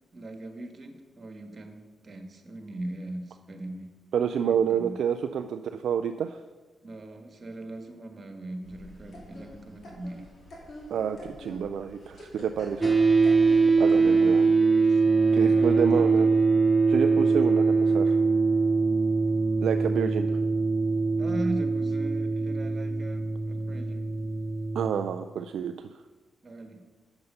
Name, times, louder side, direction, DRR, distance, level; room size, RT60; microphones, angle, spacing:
voice 1, 0.1-3.9 4.4-5.0 6.8-10.3 14.9-15.0 15.5-16.3 21.2-24.0 26.4-26.8, right 1 dB, 50° right, 6 dB, 1.4 m, -39 dB
voice 2, 4.1-6.4 10.9-12.9 13.8-14.5 15.3-16.3 16.9-18.2 19.6-20.4 24.8-25.9, right 8 dB, 75° right, 8 dB, 0.3 m, -28 dB
sound 1, 8.6-14.6, left 1 dB, 55° left, 3.0 m, -46 dB
sound 2, 12.8-24.9, right 4 dB, 15° right, 0.8 m, -23 dB
7.9 x 6.8 x 5.4 m, 1.3 s
supercardioid pair, 45°, 0 cm